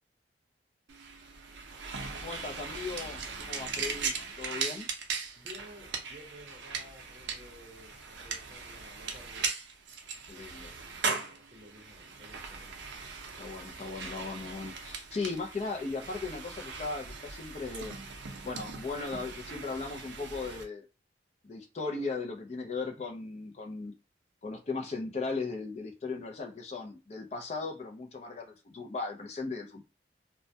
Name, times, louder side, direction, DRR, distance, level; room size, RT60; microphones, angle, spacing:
sound 1, 0.9-20.6, right 5 dB, 75° right, 0.5 m, -39 dB
voice 1, 2.2-4.9 10.3-10.7 13.4-17.9 18.4-20.9 21.4-23.9 24.4-29.8, left 3 dB, 35° left, 3 dB, 0.4 m, -37 dB
voice 2, 5.3-9.5 10.3-12.8, left 1 dB, 30° right, -3 dB, 0.6 m, -54 dB
2.1 x 2.1 x 2.6 m, 0.30 s
head